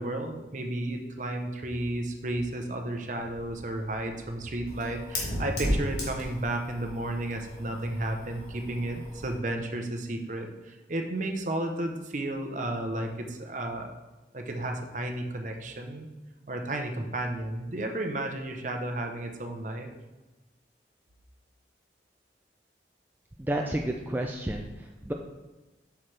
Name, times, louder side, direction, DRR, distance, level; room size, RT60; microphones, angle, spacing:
voice 1, 0.0-13.9 14.3-16.1 16.5-19.9, right 1 dB, 45° right, 4 dB, 0.8 m, -33 dB
Fire, 3.3-9.4, equal, 60° left, 2.0 m, -35 dB
voice 2, 23.4-25.1, right 1 dB, 10° right, 1 dB, 0.4 m, -31 dB
7.9 x 5.9 x 3.3 m, 1.1 s
head